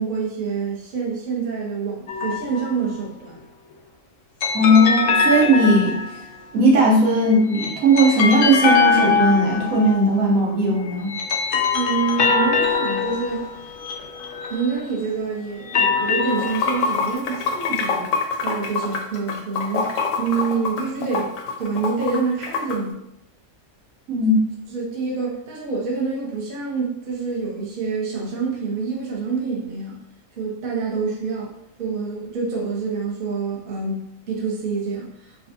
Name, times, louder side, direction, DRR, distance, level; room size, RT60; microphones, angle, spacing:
voice 1, 0.0-3.4 11.7-13.5 14.5-18.1 18.4-23.0 24.7-30.0 30.4-31.5 31.8-35.5, right 5 dB, 45° right, -3 dB, 0.9 m, -27 dB
sound 1, 2.1-2.8 4.4-6.4 7.3-10.1 10.8-14.9 15.5-17.1, left 5 dB, 90° left, 0.4 m, -23 dB
voice 2, 4.5-6.0 6.5-11.2 24.1-24.4, right 1 dB, 75° right, -3 dB, 1.3 m, -17 dB
Water / Sink (filling or washing), 16.3-22.8, left 5 dB, 70° left, 0.9 m, -25 dB
5.1 x 2.3 x 2.6 m, 0.80 s
omnidirectional pair, 1.5 m